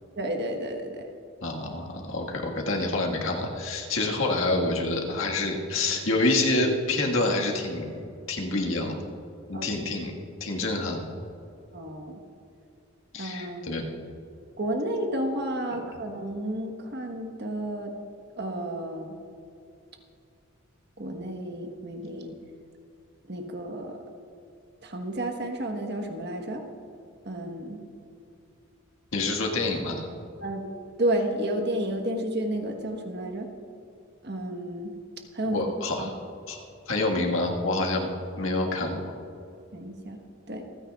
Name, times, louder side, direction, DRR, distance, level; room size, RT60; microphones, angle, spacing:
voice 1, 0.2-1.0 9.5-9.7 11.7-12.2 13.2-13.7 14.6-17.9 18.4-19.1 21.0-22.3 23.3-24.0 24.8-26.6 27.3-27.8 30.4-30.7 31.0-33.5 34.2-34.9 35.3-35.6 36.0-36.1 39.7-40.2 40.5-40.6, right 1 dB, 50° right, 3 dB, 1.3 m, -31 dB
voice 2, 1.4-8.0 8.3-9.0 9.5-10.1 10.4-11.0 13.1-13.9 15.7-15.8 29.1-30.1 35.4-36.2 36.5-36.6 36.9-38.1 38.4-39.0, left 2 dB, 70° left, 0 dB, 1.7 m, -27 dB
27.0 x 9.8 x 2.4 m, 2.5 s
head